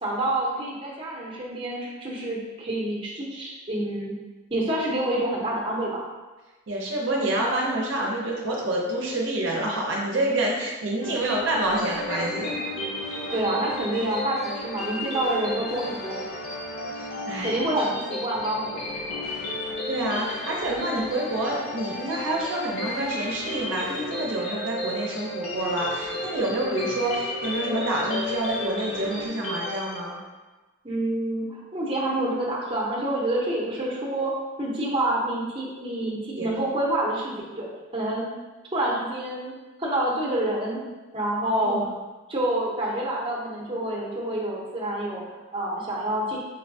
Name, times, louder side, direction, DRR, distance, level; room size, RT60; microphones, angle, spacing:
voice 1, 0.0-4.1 4.5-6.0 13.3-16.2 17.4-19.2 30.8-34.3 34.6-38.3 38.7-39.5 39.8-40.8 41.1-41.8 42.3-46.4, right 1 dB, 25° right, -5 dB, 0.7 m, -27 dB
voice 2, 6.7-12.6 16.9-17.6 19.9-30.2 36.3-36.5 41.6-41.9, right 1 dB, 65° right, -2 dB, 0.6 m, -28 dB
sound 1, 11.0-29.3, left 1 dB, 35° left, 0.4 m, -38 dB
sound 2, 11.7-30.0, left 1 dB, 80° left, 0.9 m, -35 dB
5.2 x 2.2 x 2.6 m, 1.2 s
head